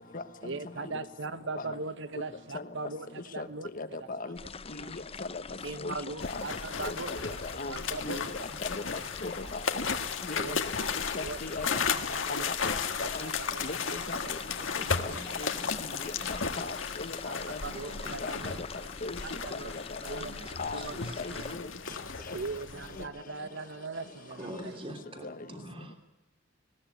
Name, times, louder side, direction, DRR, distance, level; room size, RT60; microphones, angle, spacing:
voice 1, 0.4-3.7 4.0-4.1 4.8-4.9 5.6-7.1 7.7-8.2 10.3-11.6 11.9-12.7 13.0-14.3 14.7-15.7 16.6-16.7 17.2-18.9 19.2-19.7 20.0-21.0 21.3-21.5 22.3-24.9, right 3 dB, 70° right, 1.2 m, -40 dB
voice 2, 3.8-4.4 4.7-5.0 5.3-5.4 5.8-5.9 6.2-6.4 6.8-7.7 8.0-8.4 9.2-9.6 10.3-10.5 11.1-11.8 12.3-12.8 13.1-13.3 13.6-14.2 15.0-15.1 15.4-15.5 15.8-16.1 16.6-17.6 18.2-18.3 19.0-19.2 19.5-20.2 20.6-20.8 21.2-21.6 22.3-22.4 25.2-25.3, left 3 dB, 45° left, 1.2 m, -38 dB
sound 1, 4.3-21.5, left 4 dB, 30° left, 0.7 m, -44 dB
sound 2, 6.2-23.0, left 6 dB, 85° left, 1.6 m, -35 dB
voice 3, 14.8-16.5 17.7-18.5 20.2-21.3 22.7-22.8 24.3-26.0, right 1 dB, 30° right, 3.0 m, -46 dB
20.0 x 17.5 x 9.2 m
head